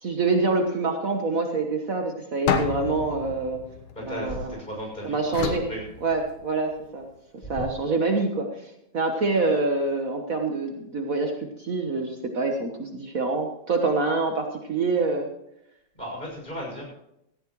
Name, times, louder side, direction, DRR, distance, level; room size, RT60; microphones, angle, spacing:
voice 1, 0.0-3.6 4.1-4.5 5.0-5.6 6.0-7.0 7.5-15.3, right 3 dB, 70° right, 3 dB, 0.8 m, -26 dB
sound 1, 2.5-4.7 5.3-6.7, left 7 dB, 90° left, 2.7 m, -30 dB
voice 2, 3.9-5.9 15.9-16.8, equal, 15° left, -2 dB, 6.6 m, -35 dB
17.5 x 14.5 x 3.1 m, 0.82 s
omnidirectional pair, 3.4 m